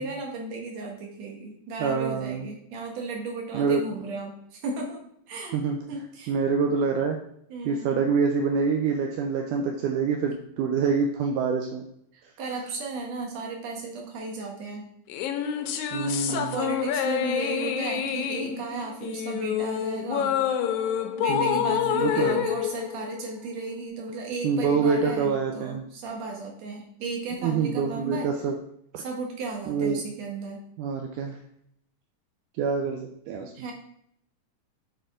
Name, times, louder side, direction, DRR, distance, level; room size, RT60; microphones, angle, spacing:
voice 1, 0.0-5.0 5.3-5.6 5.9-6.3 6.6-6.7 7.5-8.0 12.1-14.9 16.3-20.4 21.2-28.3 29.0-30.6 33.5-33.7, right 3 dB, 60° right, 0 dB, 2.4 m, -35 dB
voice 2, 1.8-2.5 3.5-3.8 5.5-5.8 6.3-7.2 7.7-11.9 15.9-16.6 21.3-22.4 24.4-25.8 27.4-28.6 28.9-29.0 29.7-30.0 30.8-31.4 32.6-33.5, right 5 dB, 80° right, 3 dB, 2.0 m, -26 dB
sound 1, 15.1-23.7, left 9 dB, 80° left, 1.8 m, -28 dB
6.5 x 5.1 x 3.7 m, 0.72 s
omnidirectional pair, 3.8 m